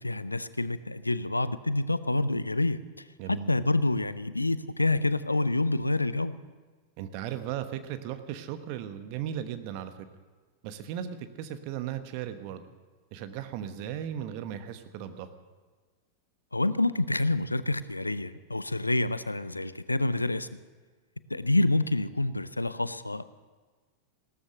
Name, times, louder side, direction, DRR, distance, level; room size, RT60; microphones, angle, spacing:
voice 1, 0.0-2.8 3.3-6.4 16.5-20.5 21.3-23.2, left 2 dB, 85° left, 16 dB, 0.5 m, -27 dB
voice 2, 3.2-3.5 7.0-10.1 10.6-12.6 13.1-15.3, right 10 dB, 45° right, 9 dB, 1.2 m, -36 dB
17.0 x 13.0 x 6.5 m, 1.4 s
figure-of-eight pair, 90°, 0 cm